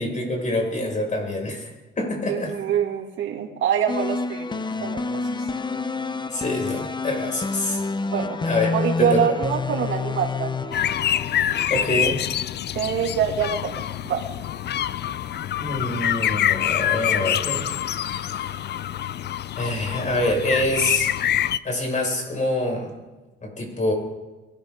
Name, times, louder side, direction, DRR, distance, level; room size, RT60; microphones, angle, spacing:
voice 1, 0.0-1.7 2.0-2.5 6.3-7.8 8.2-8.7 9.0-9.2 11.7-12.2 15.6-17.8 18.1-18.6 19.6-21.1 21.6-22.9 23.4-23.9, left 1 dB, 40° left, 1 dB, 5.8 m, -26 dB
voice 2, 2.3-5.3 8.0-8.4 8.7-10.9 12.0-12.1 12.7-14.2, right 8 dB, 75° right, 2 dB, 2.5 m, -25 dB
sound 1, 3.9-12.1, left 3 dB, 25° left, 0.7 m, -28 dB
sound 2, 10.7-21.6, left 11 dB, 60° left, 0.6 m, -26 dB
22.0 x 13.0 x 3.8 m, 1.1 s
cardioid pair, 90°, 20 cm